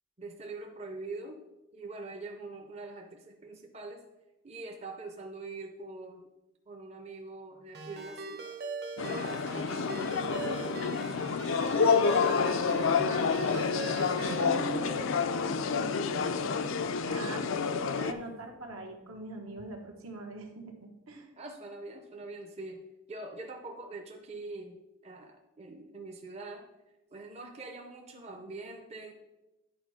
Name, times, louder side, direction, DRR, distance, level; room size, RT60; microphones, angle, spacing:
voice 1, 0.2-1.4 1.7-4.0 4.4-6.3 6.7-8.6 9.0-10.3 17.2-17.7 21.4-24.8 25.0-26.7 27.1-29.1, right 2 dB, 30° right, 3 dB, 0.6 m, -44 dB
Ringtone, 7.7-14.6, right 3 dB, 50° right, 1.0 m, -41 dB
sound 1, 9.0-18.1, left 5 dB, 70° left, 0.4 m, -29 dB
voice 2, 12.3-13.7 14.2-16.8 17.0-17.5 17.9-21.3, right 2 dB, 80° right, 2 dB, 1.3 m, -42 dB
10.5 x 4.4 x 4.9 m, 1.0 s
head